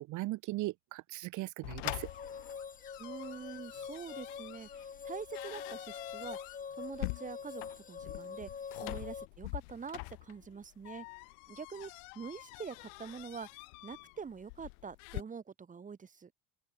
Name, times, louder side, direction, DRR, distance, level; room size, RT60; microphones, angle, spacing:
voice 1, 0.1-2.1, right 19 dB, 50° right, 1.6 m, -38 dB
sound 1, 1.6-15.2, left 36 dB, 80° left, 1.8 m, -45 dB
sound 2, 1.8-9.3, left 6 dB, 20° left, 5.0 m, -45 dB
voice 2, 3.0-6.4 6.7-8.5 8.8-11.1 11.5-13.5 13.8-16.3, right 6 dB, 20° right, 6.8 m, -45 dB
open air
cardioid pair, 155°, 39 cm